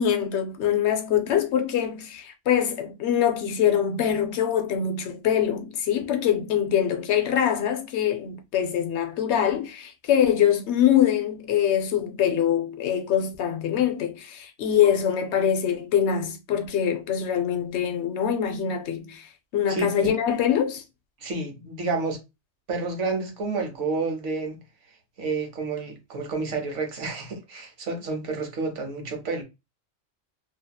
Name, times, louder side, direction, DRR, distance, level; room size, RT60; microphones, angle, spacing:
voice 1, 0.0-20.8, left 9 dB, 70° left, 0.8 m, -24 dB
voice 2, 19.7-20.1 21.2-22.2 22.7-24.6 25.2-29.4, right 3 dB, 80° right, 1.2 m, -30 dB
2.7 x 2.7 x 2.2 m
omnidirectional pair, 1.2 m